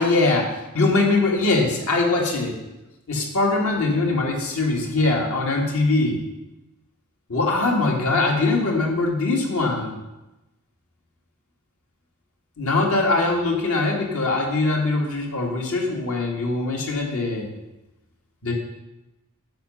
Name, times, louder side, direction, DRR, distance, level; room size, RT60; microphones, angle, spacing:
voice 1, 0.0-2.6 3.1-6.2 7.3-9.9 12.6-17.5 18.4-18.5, left 3 dB, 70° left, 0 dB, 2.1 m, -22 dB
10.0 x 6.9 x 5.5 m, 1.0 s
head